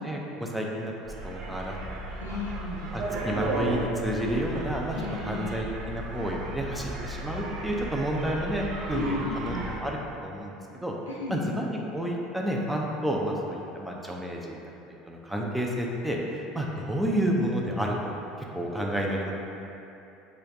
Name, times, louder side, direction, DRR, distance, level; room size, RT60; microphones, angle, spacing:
voice 1, 0.0-0.9 1.2-1.8 2.3-2.4 2.9-10.9 11.3-14.6 15.1-16.2 16.5-18.1 18.5-19.3, equal, 5° right, -2 dB, 0.5 m, -30 dB
sound 1, 1.1-9.8, right 2 dB, 50° right, 0.5 m, -35 dB
voice 2, 2.2-2.9 4.9-5.5 8.9-9.7 11.1-11.5, left 3 dB, 90° left, -2 dB, 0.4 m, -34 dB
3.2 x 2.4 x 3.9 m, 2.8 s
hypercardioid pair, 80°, 0 cm